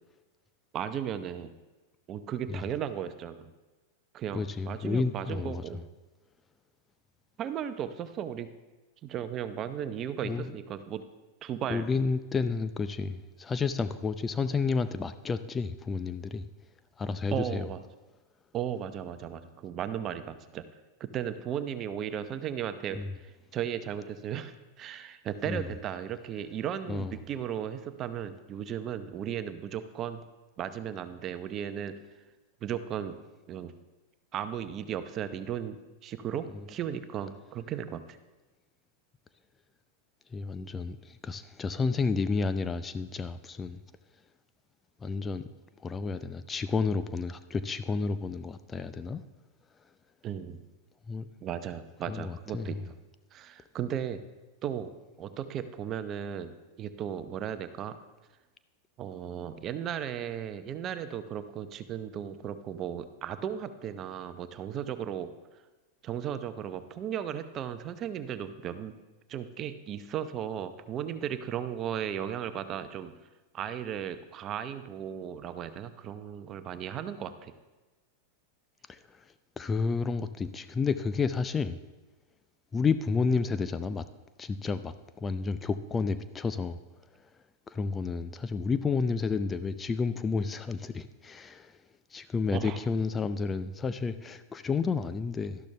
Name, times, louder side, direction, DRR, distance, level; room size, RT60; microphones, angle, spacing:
voice 1, 0.7-1.5 2.1-3.5 4.1-5.8 7.4-8.5 9.0-11.0 11.4-11.8 17.3-17.8 18.5-20.7 21.0-30.2 30.6-31.9 32.6-33.2 33.5-33.7 34.3-38.2 50.2-50.6 51.4-52.8 53.3-54.2 54.6-54.9 55.2-56.5 56.8-57.9 59.0-65.3 66.0-68.9 69.3-73.2 73.5-77.5 92.5-92.8, right 9 dB, 35° right, 11 dB, 0.8 m, -36 dB
voice 2, 4.3-5.6 10.2-10.6 11.7-16.5 17.0-17.7 22.9-23.1 25.5-25.7 26.9-27.1 36.5-36.6 40.3-43.8 45.0-45.4 45.8-49.2 51.1-51.3 52.1-52.8 78.9-79.2 79.6-81.8 82.7-84.1 84.4-86.8 87.7-91.7 92.1-95.6, left 4 dB, 20° left, 12 dB, 0.5 m, -31 dB
12.5 x 11.5 x 3.3 m, 1.2 s
hypercardioid pair, 95°, 0 cm